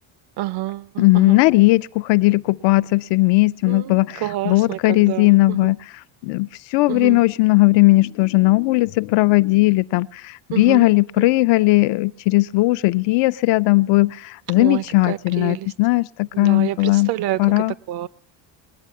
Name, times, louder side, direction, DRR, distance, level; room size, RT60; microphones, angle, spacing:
voice 1, 0.4-1.4 3.7-5.7 6.9-7.2 10.5-10.9 11.2-11.3 14.6-15.7 16.3-18.1, right 15 dB, 60° right, 0.6 m, -28 dB
voice 2, 1.0-5.8 6.2-17.1 17.4-17.7, left 22 dB, 75° left, 0.5 m, -17 dB
20.0 x 8.4 x 8.3 m
cardioid pair, 120°, 44 cm